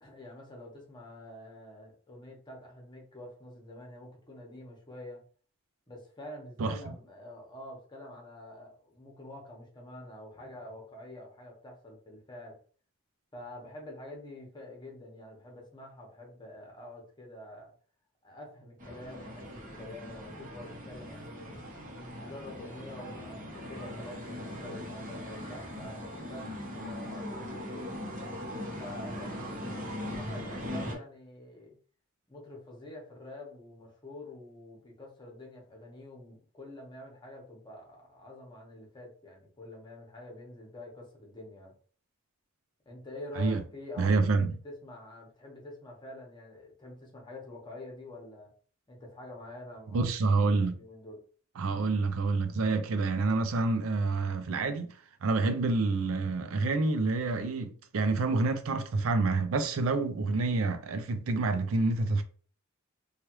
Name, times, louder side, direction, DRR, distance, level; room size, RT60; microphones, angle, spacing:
voice 1, 0.0-5.2 5.9-12.6 13.3-17.7 18.2-27.9 28.8-31.7 32.3-41.7 42.9-48.5 48.9-50.1 50.4-51.2, left 1 dB, 20° left, 1.0 m, -47 dB
sound 1, 18.8-30.9, left 1 dB, 45° right, 0.9 m, -40 dB
voice 2, 44.0-44.5 49.9-50.7 51.6-62.2, right 3 dB, 75° right, 0.4 m, -28 dB
3.1 x 2.4 x 2.9 m
head